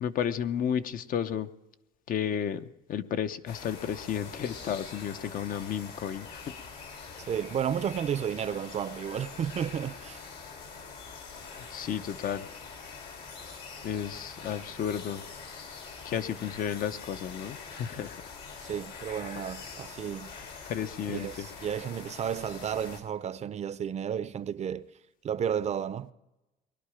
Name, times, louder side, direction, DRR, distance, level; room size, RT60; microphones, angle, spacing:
voice 1, 0.0-1.5 2.1-2.6 2.9-6.3 11.7-12.4 13.8-15.2 16.1-18.1 20.7-21.3, left 8 dB, 55° left, 0.8 m, -32 dB
sound 1, 3.5-23.0, left 5 dB, 70° left, 3.3 m, -44 dB
voice 2, 7.3-10.2 18.7-20.3 21.1-24.9 25.2-26.1, right 8 dB, 40° right, 0.6 m, -32 dB
20.5 x 11.5 x 5.0 m
cardioid pair, 110°, 17 cm